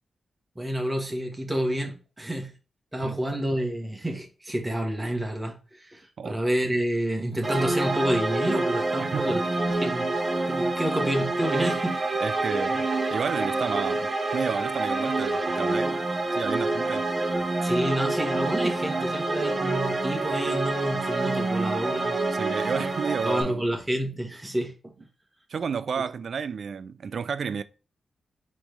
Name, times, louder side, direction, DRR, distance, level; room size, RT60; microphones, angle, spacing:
voice 1, 0.5-2.5 2.9-9.4 9.8-10.1 10.5-12.0 17.6-22.2 23.2-24.7, right 1 dB, 10° right, 1.2 m, -29 dB
sound 1, 7.4-23.4, right 2 dB, 30° right, 0.8 m, -27 dB
voice 2, 9.0-9.4 12.2-16.0 16.3-17.1 22.3-23.6 25.5-27.6, right 6 dB, 65° right, 0.3 m, -31 dB
4.1 x 3.2 x 3.3 m
wide cardioid pair, 105°, 0 cm